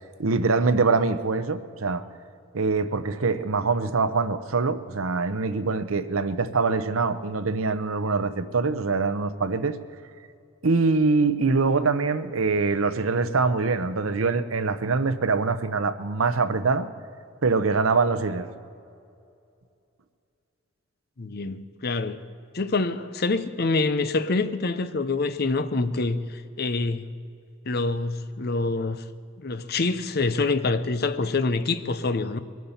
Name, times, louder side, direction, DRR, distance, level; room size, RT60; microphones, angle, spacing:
voice 1, 0.2-2.0 2.5-9.8 10.6-16.9 17.4-18.5, right 4 dB, 80° right, 0.8 m, -24 dB
voice 2, 21.2-22.2 22.5-27.1 27.7-29.0 29.4-32.4, left 3 dB, 50° left, 0.7 m, -26 dB
22.0 x 9.3 x 7.1 m
head